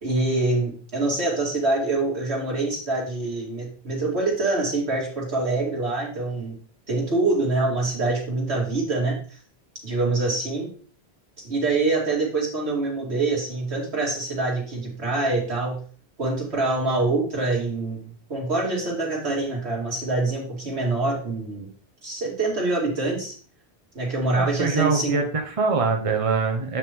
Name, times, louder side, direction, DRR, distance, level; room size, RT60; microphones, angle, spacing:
voice 1, 0.0-6.6 6.9-9.2 9.8-10.7 11.4-15.8 16.2-21.7 22.0-23.4 23.9-25.2, right 2 dB, 85° right, -3 dB, 2.8 m, -25 dB
voice 2, 24.3-26.8, right 4 dB, 35° right, 3 dB, 1.0 m, -24 dB
8.0 x 5.8 x 3.5 m, 0.42 s
omnidirectional pair, 1.1 m